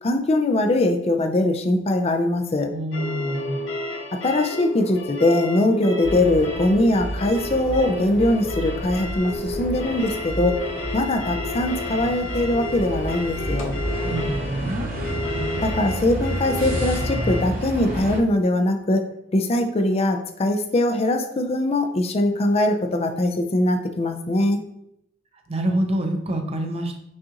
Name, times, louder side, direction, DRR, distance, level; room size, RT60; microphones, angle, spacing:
voice 1, 0.0-2.7 4.2-10.6 10.9-13.8 15.6-19.0 19.3-24.6, left 1 dB, 30° left, 5 dB, 0.4 m, -21 dB
voice 2, 2.7-3.6 14.0-14.9 25.5-27.0, right 1 dB, 30° right, 4 dB, 0.6 m, -26 dB
sound 1, 2.9-17.4, left 2 dB, 75° left, 0.8 m, -32 dB
sound 2, 6.0-18.2, right 1 dB, 45° right, 1.0 m, -30 dB
6.2 x 2.5 x 2.9 m, 0.78 s
head